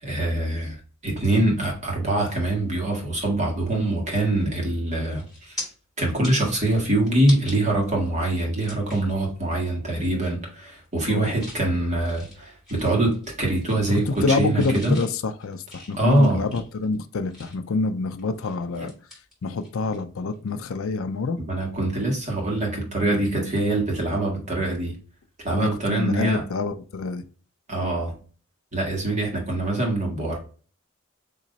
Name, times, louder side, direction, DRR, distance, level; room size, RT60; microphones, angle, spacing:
voice 1, 0.0-0.8 1.0-5.7 6.0-15.0 16.0-16.4 18.8-18.9 21.5-25.0 25.4-26.4 27.7-28.2 28.7-30.4, right 1 dB, 35° right, 1.6 m, -24 dB
sound 1, 4.8-4.9 5.1-5.7 6.1-7.6 8.0-8.1 8.6-9.1 9.5-9.7 10.1-10.5 10.8-11.6 12.0-13.4 13.6-14.3 14.6-17.7 18.2-20.0 20.3-20.5 22.4-22.5, left 1 dB, ahead, 1.8 m, -42 dB
voice 2, 13.9-18.9 19.4-21.4 25.5-27.2, left 3 dB, 65° left, 0.5 m, -27 dB
3.8 x 3.0 x 4.0 m
head